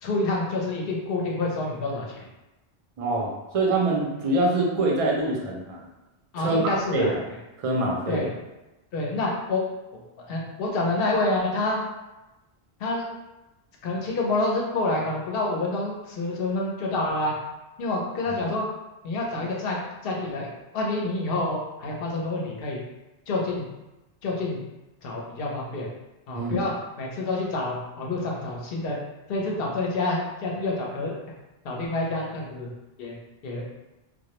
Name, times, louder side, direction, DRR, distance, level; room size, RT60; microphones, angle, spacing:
voice 1, 0.0-2.2 6.3-7.1 8.1-8.3 8.9-9.6 10.3-11.8 12.8-13.1 13.8-17.3 17.8-18.6 19.0-19.8 20.0-22.8 23.3-23.7 24.2-24.6 25.0-25.9 26.3-26.7 27.0-29.0 29.3-31.2 31.6-32.7 33.0-33.1 33.4-33.6, left 2 dB, 65° left, -2 dB, 0.8 m, -28 dB
voice 2, 3.0-5.8 6.4-7.2 7.6-8.3 26.3-26.6, right 2 dB, 50° right, -2 dB, 0.4 m, -25 dB
2.2 x 2.0 x 2.8 m, 1.0 s
omnidirectional pair, 1.1 m